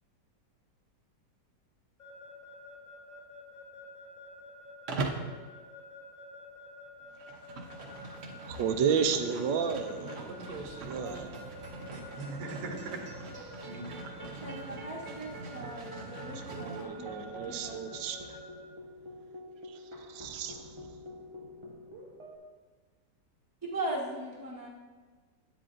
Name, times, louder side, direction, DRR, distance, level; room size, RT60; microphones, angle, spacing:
Keyboard (musical) / Alarm, 2.0-18.6, left 3 dB, 45° left, 2.2 m, -50 dB
Livestock farm animals working animals, 4.9-5.3 7.0-16.9, right 3 dB, 55° right, 0.9 m, -42 dB
voice 1, 8.5-10.2 10.8-11.1 16.5-18.4 19.7-19.8 20.1-20.6, right 6 dB, 85° right, 8 dB, 1.3 m, -32 dB
voice 2, 10.0-11.4 11.9-13.1 13.7-14.1, right 3 dB, 70° right, 1 dB, 1.5 m, -42 dB
sound 1, 10.8-22.4, right 1 dB, 30° right, 0.5 m, -48 dB
voice 3, 14.4-17.7 23.6-24.7, right 1 dB, 10° right, -8 dB, 1.0 m, -39 dB
10.0 x 8.9 x 2.5 m, 1.4 s
omnidirectional pair, 2.0 m